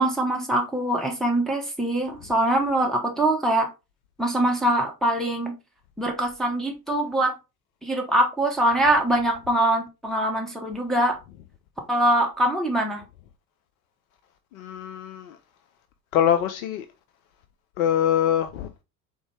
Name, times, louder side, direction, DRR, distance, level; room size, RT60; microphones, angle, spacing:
voice 1, 0.0-3.7 4.2-5.5 6.0-7.3 7.8-11.2 11.9-13.0, right 1 dB, ahead, 0.9 m, -23 dB
voice 2, 14.7-15.1 16.1-16.8 17.8-18.5, left 10 dB, 55° left, 0.6 m, -22 dB
3.9 x 3.5 x 3.3 m
figure-of-eight pair, 70°, 50 cm